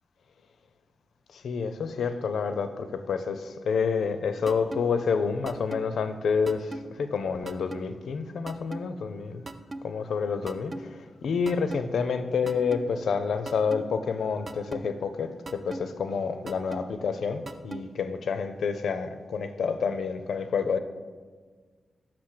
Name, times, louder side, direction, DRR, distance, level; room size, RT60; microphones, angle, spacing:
voice 1, 1.3-9.4 9.8-20.8, left 5 dB, 85° left, 9 dB, 0.5 m, -29 dB
sound 1, 4.5-4.8 5.5-5.8 6.5-6.8 7.5-7.8 8.5-8.8 9.5-9.8 10.5-10.8 11.5-11.8 12.5-12.8 13.5-13.8 14.5-14.8 15.5-15.8 16.5-16.8 17.5-17.8, right 2 dB, 35° right, 0.4 m, -37 dB
6.0 x 5.9 x 6.5 m, 1.5 s
wide cardioid pair, 125°, 0 cm